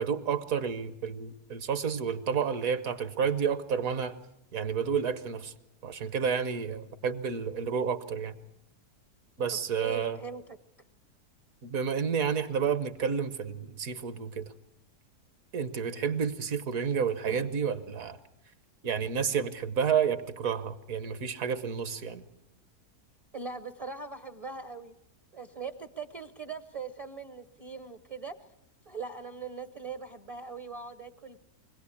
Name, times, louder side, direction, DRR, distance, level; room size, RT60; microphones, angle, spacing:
voice 1, 0.0-4.2 4.5-5.5 5.8-8.3 9.4-10.2 11.6-14.5 15.5-18.2 18.8-22.2, right 7 dB, 60° right, 12 dB, 1.4 m, -30 dB
voice 2, 9.5-10.6 23.3-24.9 25.3-28.4 28.9-31.4, right 5 dB, 30° right, 10 dB, 0.7 m, -40 dB
24.5 x 17.5 x 8.4 m, 0.87 s
omnidirectional pair, 1.7 m